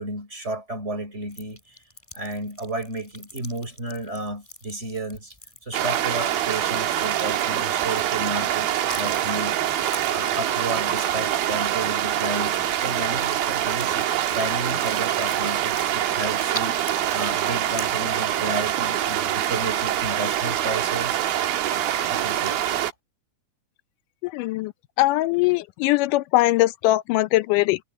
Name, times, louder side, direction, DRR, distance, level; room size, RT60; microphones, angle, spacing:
voice 1, 0.0-1.8 2.1-5.3 5.6-9.6 10.1-14.1 14.3-21.2 22.1-22.6, right 2 dB, 20° right, 4.3 m, -32 dB
sound 1, 1.3-8.4 8.8-12.2 12.5-12.8 13.2-18.2, equal, 10° left, 5.7 m, -42 dB
sound 2, 5.7-22.9, right 11 dB, 85° right, 3.3 m, -25 dB
voice 2, 24.3-24.7 25.0-27.8, left 17 dB, 80° left, 2.0 m, -21 dB
omnidirectional pair, 4.1 m